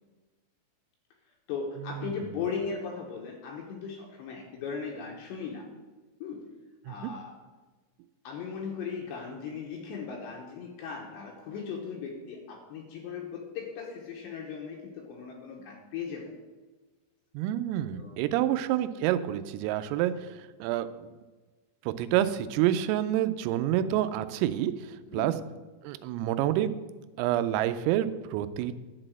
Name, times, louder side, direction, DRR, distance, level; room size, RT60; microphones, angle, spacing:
voice 1, 1.5-5.7 6.2-6.4 6.8-7.3 8.2-16.2 17.9-18.6 25.1-25.3, left 6 dB, 75° left, 0 dB, 2.7 m, -38 dB
voice 2, 17.3-21.1 21.8-25.3 25.8-26.7 27.2-28.9, right 12 dB, 85° right, 11 dB, 3.2 m, -28 dB
11.0 x 4.1 x 7.7 m, 1.3 s
omnidirectional pair, 5.9 m